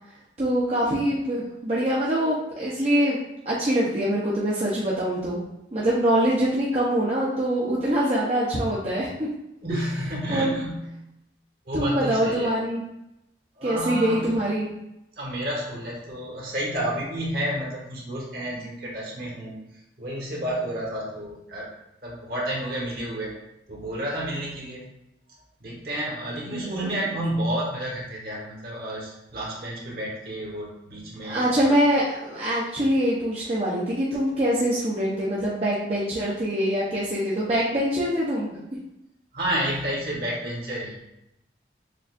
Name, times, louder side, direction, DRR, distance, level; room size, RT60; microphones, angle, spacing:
voice 1, 0.4-3.2 3.5-5.4 5.7-9.1 10.3-10.5 11.7-12.8 13.6-14.7 26.5-26.9 31.2-38.8, equal, 35° right, -7 dB, 0.6 m, -24 dB
voice 2, 9.6-10.8 11.7-12.5 13.6-14.3 15.2-19.6 20.0-21.7 22.0-23.3 23.7-24.9 25.6-31.7 39.3-41.0, right 1 dB, 55° right, -4 dB, 1.3 m, -30 dB
6.6 x 2.4 x 2.5 m, 0.87 s
head